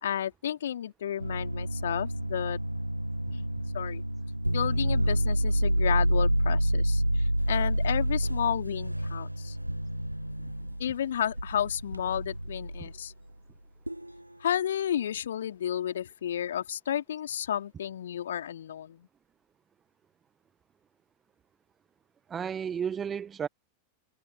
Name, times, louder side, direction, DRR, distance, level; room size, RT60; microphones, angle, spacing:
voice 1, 0.0-2.6 3.3-3.5 3.7-4.0 4.5-9.6 10.8-13.1 14.4-19.1, left 10 dB, 65° left, 2.7 m, -32 dB
sound 1, 1.2-13.0 13.9-14.2, right 1 dB, 90° right, 0.7 m, -29 dB
voice 2, 22.3-23.5, right 7 dB, 20° right, 1.1 m, -33 dB
figure-of-eight pair, 90°, 0 cm